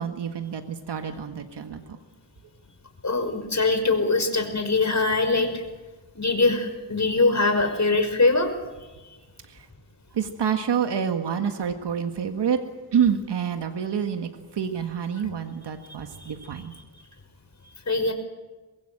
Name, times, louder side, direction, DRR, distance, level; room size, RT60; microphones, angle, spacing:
voice 1, 0.0-1.8 9.5-9.6 10.1-12.6 12.9-16.7, right 7 dB, 85° right, 6 dB, 1.7 m, -27 dB
voice 2, 3.0-5.5 6.2-8.5 17.9-18.1, left 3 dB, 45° left, 7 dB, 5.6 m, -22 dB
24.0 x 22.0 x 7.9 m, 1.2 s
cardioid pair, 65°, 40 cm